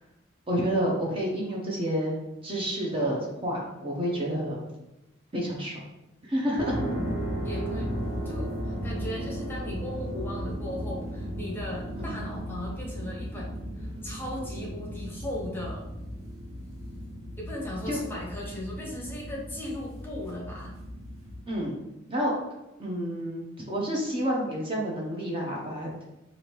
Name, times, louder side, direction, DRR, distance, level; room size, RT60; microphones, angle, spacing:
voice 1, 0.5-2.2 2.4-4.6 5.3-5.7 6.3-6.8 12.0-12.1 17.9-18.0 21.5-21.8 22.1-22.3 22.8-25.9, equal, 25° right, -3 dB, 0.7 m, -29 dB
sound 1, 6.6-21.4, equal, 85° right, 1.1 m, -35 dB
voice 2, 6.7-7.2 7.4-7.9 8.2-15.8 17.4-20.7, left 1 dB, 10° left, -4 dB, 0.9 m, -37 dB
4.9 x 2.6 x 2.9 m, 0.95 s
head